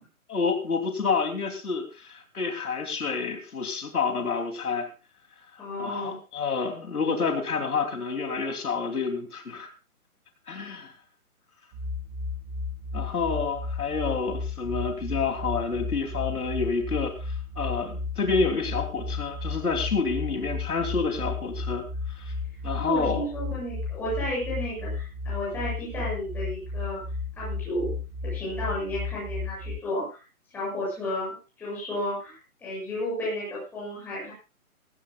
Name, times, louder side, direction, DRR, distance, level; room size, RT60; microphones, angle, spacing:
voice 1, 0.3-4.9 5.5-9.7 10.5-10.9 12.9-22.3 22.6-23.2, left 5 dB, 75° left, 5 dB, 3.2 m, -29 dB
voice 2, 5.6-6.2 22.7-27.0 27.4-27.9 28.3-30.2 30.5-34.3, left 1 dB, 5° left, -8 dB, 8.0 m, -32 dB
sound 1, 11.7-29.8, left 3 dB, 15° right, 5.2 m, -34 dB
19.0 x 16.0 x 2.4 m, 0.32 s
hypercardioid pair, 175°, 45 cm